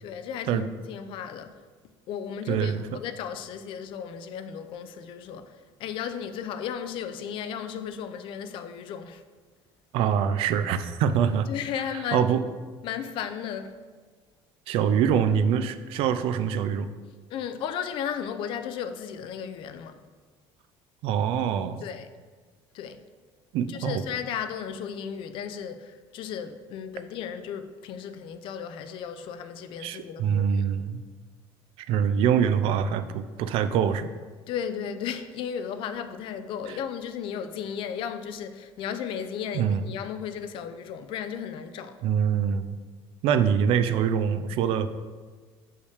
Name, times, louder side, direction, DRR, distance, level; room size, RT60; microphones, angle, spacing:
voice 1, 0.0-1.6 2.1-5.5 5.8-9.2 11.5-12.3 12.8-13.8 17.3-20.0 21.8-22.1 22.7-23.0 23.7-30.6 34.5-42.0, left 8 dB, 60° left, 0.5 m, -35 dB
voice 2, 2.5-2.8 9.9-11.5 12.1-12.4 14.7-16.9 21.0-21.8 23.5-24.0 29.8-31.0 31.9-34.1 36.7-36.8 39.5-39.9 42.0-42.8 43.2-44.9, right 8 dB, 70° right, 0.4 m, -24 dB
6.4 x 5.5 x 3.4 m
cardioid pair, 150°, 10 cm